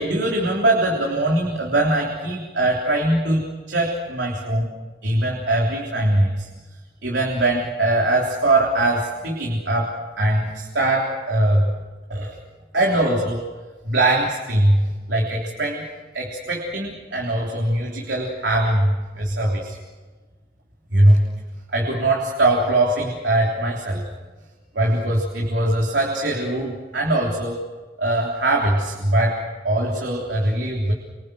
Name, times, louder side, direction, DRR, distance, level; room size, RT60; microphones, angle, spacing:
voice 1, 0.0-4.7 5.0-6.5 7.0-11.7 12.1-12.3 12.7-13.4 13.8-15.9 16.1-19.8 20.9-21.2 21.7-24.1 24.8-27.6 28.0-30.9, right 1 dB, 85° right, -1 dB, 3.6 m, -21 dB
29.5 x 25.0 x 6.4 m, 1.4 s
head